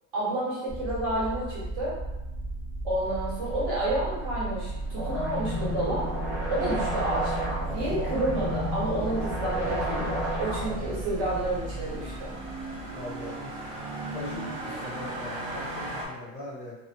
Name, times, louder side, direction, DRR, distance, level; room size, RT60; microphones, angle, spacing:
voice 1, 0.1-1.9 2.8-6.1 6.5-12.3 14.6-14.8, right 1 dB, 60° right, -8 dB, 1.4 m, -30 dB
sound 1, 0.7-13.7, right 2 dB, 20° right, 0.7 m, -35 dB
sound 2, 3.0-16.1, right 1 dB, 80° right, 0.8 m, -40 dB
sound 3, 4.9-10.9, equal, 5° right, 1.2 m, -32 dB
voice 2, 7.7-8.1 12.9-13.8 14.1-16.8, left 1 dB, 15° left, -10 dB, 0.4 m, -40 dB
2.5 x 2.1 x 2.4 m, 0.99 s
supercardioid pair, 180°, 40 cm